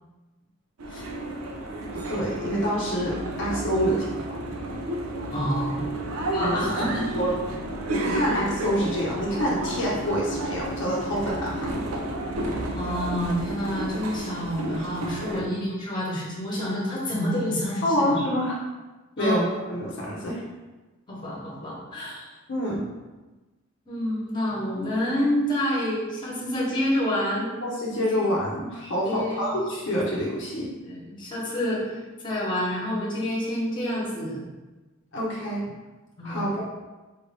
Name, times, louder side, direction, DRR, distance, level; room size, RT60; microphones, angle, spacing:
sound 1, 0.8-15.4, right 1 dB, 85° right, 0.6 m, -31 dB
voice 1, 2.1-4.4 6.4-6.6 7.1-7.4 8.0-11.7 15.3-15.5 17.8-18.6 19.2-20.4 22.5-22.8 27.6-30.7 35.1-35.6 36.2-36.6, equal, 60° left, -5 dB, 0.7 m, -27 dB
voice 2, 5.3-5.8 6.2-7.1 8.2-8.4 12.7-18.2 19.2-19.4 21.1-22.3 23.9-27.5 28.1-28.2 29.0-29.5 30.8-34.5 36.2-36.5, equal, 20° left, -5 dB, 1.1 m, -28 dB
4.4 x 2.6 x 3.3 m, 1.2 s
head